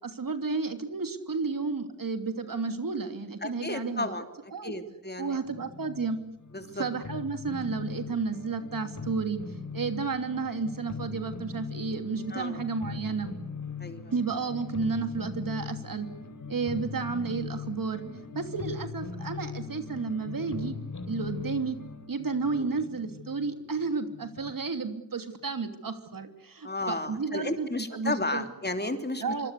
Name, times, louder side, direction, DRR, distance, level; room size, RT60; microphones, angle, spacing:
voice 1, 0.0-4.1 4.5-4.7 5.2-6.2 6.7-13.3 14.1-16.1 16.5-20.7 21.1-21.8 22.1-28.5 29.2-29.5, right 4 dB, 75° right, 8 dB, 2.9 m, -32 dB
voice 2, 3.4-5.4 6.5-6.8 12.3-12.6 13.8-14.1 22.5-22.7 26.6-29.2, left 2 dB, 30° left, 7 dB, 3.1 m, -33 dB
sound 1, 5.5-24.6, left 5 dB, 60° left, 4.5 m, -40 dB
26.0 x 25.5 x 8.3 m, 0.78 s
wide cardioid pair, 85°, 34 cm